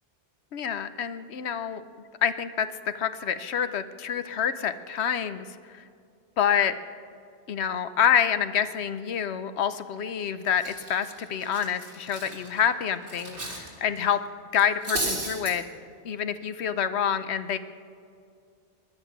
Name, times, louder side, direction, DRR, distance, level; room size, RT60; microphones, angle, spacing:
voice 1, 0.5-1.8 2.2-5.8 6.4-6.7 7.5-14.2 14.5-15.6 16.0-17.6, left 8 dB, 75° left, 12 dB, 1.0 m, -27 dB
Cutlery silverware, 10.0-10.2 10.6-13.7 14.0-14.1 14.5-15.5, right 2 dB, 85° right, 3.7 m, -34 dB
20.0 x 12.0 x 6.0 m, 2.4 s
omnidirectional pair, 1.1 m